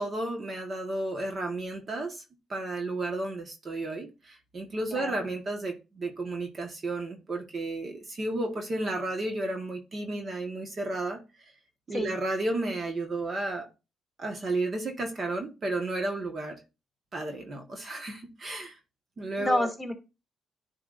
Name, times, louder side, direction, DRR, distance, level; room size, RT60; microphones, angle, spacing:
voice 1, 0.0-2.2 2.5-11.2 11.9-13.7 14.2-16.6 17.1-18.8 19.2-19.7, right 2 dB, 40° right, 1.5 m, -32 dB
voice 2, 19.4-19.9, left 1 dB, 10° left, 2.3 m, -29 dB
10.0 x 4.8 x 2.6 m
cardioid pair, 90°, 0 cm